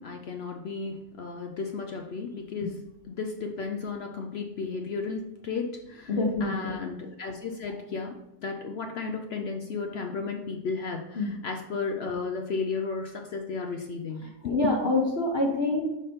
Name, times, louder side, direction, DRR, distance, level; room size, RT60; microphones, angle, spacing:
voice 1, 0.0-14.8, left 4 dB, 60° left, 4 dB, 0.7 m, -34 dB
voice 2, 6.1-6.7 11.2-11.3 14.4-15.8, left 2 dB, 45° left, -3 dB, 1.3 m, -26 dB
6.4 x 5.0 x 4.3 m, 0.94 s
omnidirectional pair, 1.6 m